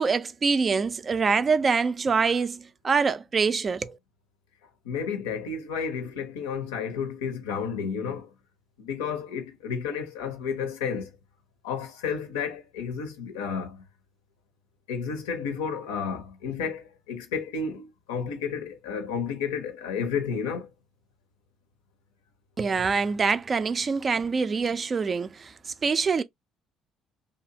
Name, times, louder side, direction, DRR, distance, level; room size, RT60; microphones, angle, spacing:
voice 1, 0.0-4.0 22.6-26.2, right 5 dB, 35° right, 0.3 m, -25 dB
voice 2, 4.8-8.3 8.8-11.1 11.6-13.8 14.9-20.7, left 6 dB, 75° left, 0.5 m, -31 dB
2.7 x 2.4 x 2.6 m
figure-of-eight pair, 50°, 0 cm